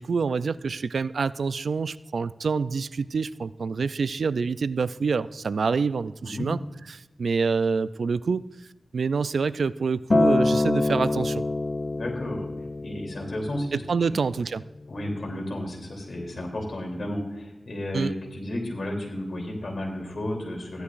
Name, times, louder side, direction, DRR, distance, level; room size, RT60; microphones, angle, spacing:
voice 1, 0.0-6.6 6.9-8.4 8.9-11.4 13.7-14.6 17.9-18.1, right 5 dB, 85° right, 16 dB, 0.3 m, -26 dB
Acoustic guitar, 10.1-14.4 15.2-15.3, left 2 dB, 45° left, 0.4 m, -26 dB
voice 2, 11.9-12.5 12.8-13.8 14.9-20.8, left 1 dB, 70° left, 1 dB, 3.1 m, -32 dB
15.5 x 11.5 x 2.5 m, 1.1 s
cardioid pair, 50°, 0 cm